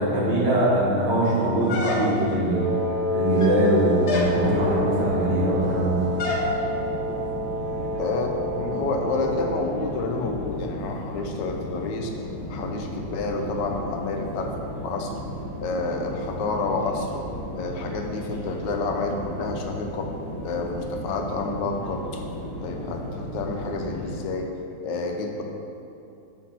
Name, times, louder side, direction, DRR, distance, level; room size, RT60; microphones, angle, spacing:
voice 1, 0.0-2.7 3.1-6.0, right 1 dB, 75° right, -7 dB, 2.3 m, -22 dB
sound 1, 1.7-2.4 3.3-3.7 4.1-4.4 6.2-6.5, left 2 dB, 55° left, 0.8 m, -28 dB
Wind instrument woodwind instrument, 2.5-9.8, equal, 40° right, 1.8 m, -29 dB
sound 2, 4.2-24.2, equal, 15° left, 1.0 m, -35 dB
voice 2, 8.0-12.1 12.5-15.1 15.6-17.2 17.5-20.1 20.4-22.2 22.6-24.5 24.8-25.4, left 3 dB, 80° left, 3 dB, 1.3 m, -29 dB
6.0 x 4.5 x 5.9 m, 2.7 s
omnidirectional pair, 1.9 m